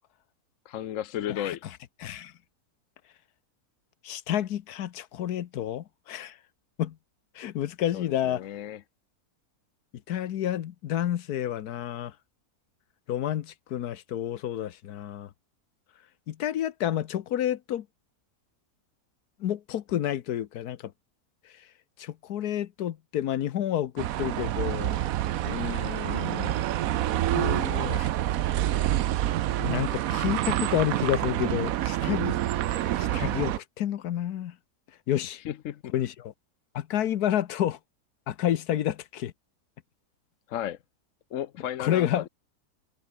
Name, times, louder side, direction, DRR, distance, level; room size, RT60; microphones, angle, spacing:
voice 1, 0.7-1.6 7.9-8.8 25.4-26.6 35.4-35.9 40.5-40.8 41.3-42.3, left 11 dB, 65° left, 1.0 m, -34 dB
voice 2, 2.0-2.3 4.0-6.4 6.8-7.0 7.3-8.4 10.1-12.1 13.1-15.3 16.3-17.9 19.4-20.9 22.0-25.0 27.3-28.1 29.6-32.4 32.7-34.5 35.1-35.4 35.9-36.3 36.7-37.8 38.3-39.3 41.8-42.2, left 11 dB, 80° left, 1.4 m, -29 dB
sound 1, 24.0-33.6, right 13 dB, 70° right, 1.1 m, -27 dB
omnidirectional pair, 1.6 m